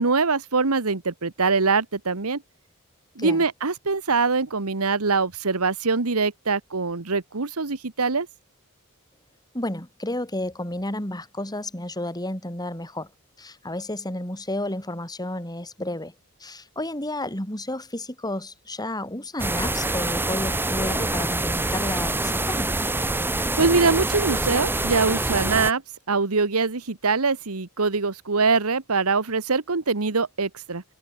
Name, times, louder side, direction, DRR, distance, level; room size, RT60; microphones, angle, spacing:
voice 1, 0.0-2.4 3.1-8.3 23.6-25.8 26.1-30.8, right 4 dB, 85° right, 1.4 m, -23 dB
voice 2, 9.5-13.1 13.4-16.1 16.4-22.7, left 1 dB, 20° left, 6.2 m, -31 dB
sound 1, 19.4-25.7, right 2 dB, 10° right, 1.9 m, -25 dB
head